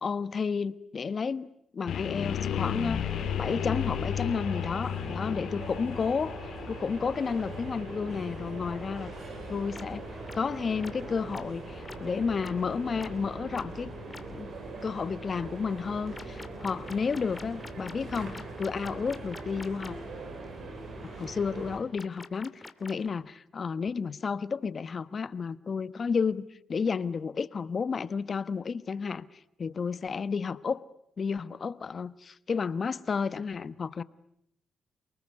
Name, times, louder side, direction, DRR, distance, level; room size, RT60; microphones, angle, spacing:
voice 1, 0.0-3.0 3.4-6.4 6.7-9.1 9.5-10.1 10.4-13.9 14.3-14.5 14.8-20.0 21.0-29.3 29.6-30.8 31.2-34.0, left 5 dB, 50° left, 1.1 m, -31 dB
sound 1, 1.9-13.8, left 9 dB, 75° left, 2.8 m, -36 dB
sound 2, 2.5-21.8, right 2 dB, 60° right, 7.3 m, -41 dB
sound 3, 9.7-9.8 10.3-10.4 10.8-10.9 11.3-11.4 11.9-12.0 12.4-12.5 13.0-13.1 13.5-13.6 14.1-14.2 16.1-19.9 21.9-23.1, left 3 dB, 25° left, 2.5 m, -45 dB
29.0 x 20.0 x 9.6 m
cardioid pair, 70°, 0 cm